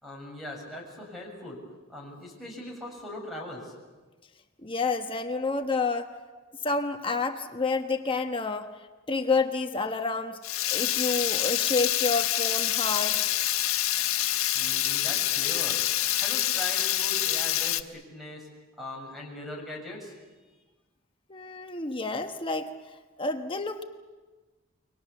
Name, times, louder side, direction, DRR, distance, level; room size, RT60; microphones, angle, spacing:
voice 1, 0.0-1.6 1.9-3.7 5.3-5.4 5.9-6.0 6.3-6.4 14.5-15.8 16.2-18.5 18.8-20.1, left 1 dB, ahead, 0 dB, 6.9 m, -40 dB
voice 2, 4.6-6.1 6.6-8.7 9.1-10.4 10.7-13.2 21.3-22.7 23.2-23.8, left 3 dB, 25° left, 6 dB, 1.1 m, -29 dB
Water tap faucet / Liquid, 10.4-17.8, left 13 dB, 85° left, 1.2 m, -26 dB
29.5 x 23.5 x 7.1 m, 1.3 s
head